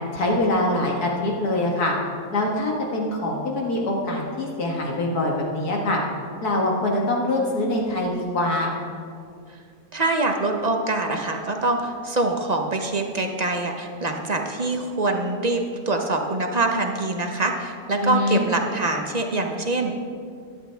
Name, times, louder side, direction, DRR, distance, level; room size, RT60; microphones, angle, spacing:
voice 1, 0.1-2.0 2.3-6.0 6.4-8.7 18.0-18.5, left 1 dB, 75° left, -1 dB, 2.2 m, -24 dB
voice 2, 9.9-19.9, right 2 dB, 40° right, 3 dB, 0.6 m, -24 dB
14.5 x 10.5 x 3.5 m, 2.3 s
omnidirectional pair, 1.7 m